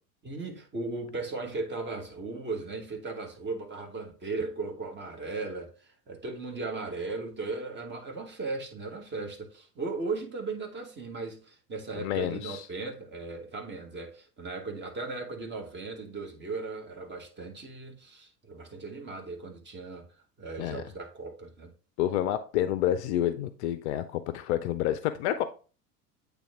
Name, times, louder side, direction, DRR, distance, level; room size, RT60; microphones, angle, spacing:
voice 1, 0.2-20.1 20.4-21.7, right 3 dB, 25° right, 1.4 m, -37 dB
voice 2, 12.0-12.7 20.6-20.8 22.0-25.5, left 12 dB, 45° left, 0.5 m, -29 dB
8.3 x 3.4 x 3.6 m
figure-of-eight pair, 70°, 47 cm